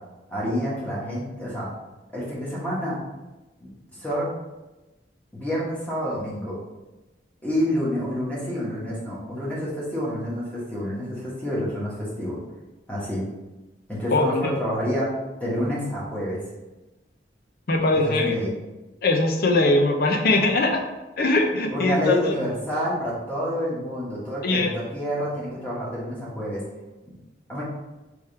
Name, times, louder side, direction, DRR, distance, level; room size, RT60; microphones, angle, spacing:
voice 1, 0.3-1.7 2.1-3.0 3.6-4.3 5.3-6.6 7.4-12.4 12.9-13.3 13.9-16.4 17.9-18.5 21.7-26.6 27.1-27.2 27.5-27.6, equal, 10° left, -7 dB, 1.2 m, -28 dB
voice 2, 14.1-14.5 17.7-18.4 19.0-20.8 21.2-22.4 24.4-24.7, left 2 dB, 55° left, 2 dB, 0.6 m, -21 dB
3.5 x 3.1 x 4.5 m, 1.1 s
head